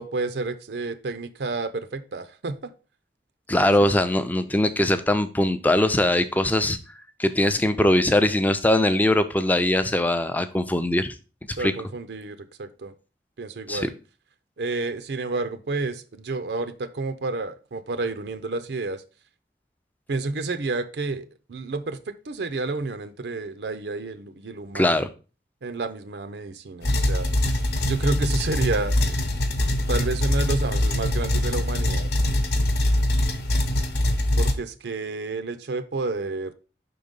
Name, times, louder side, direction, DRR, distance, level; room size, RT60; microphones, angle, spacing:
voice 1, 0.0-2.7 3.8-3.9 11.5-12.9 13.4-13.9 14.6-19.0 20.1-25.0 25.6-29.0 29.9-32.1 34.4-36.5, right 3 dB, 75° right, 0.5 m, -30 dB
voice 2, 3.5-6.8 7.2-11.1 11.6-11.7 13.7-13.8 24.7-25.1, left 1 dB, 10° left, 0.4 m, -21 dB
sound 1, 26.8-34.5, left 1 dB, 70° left, 0.8 m, -23 dB
5.5 x 3.9 x 5.1 m
head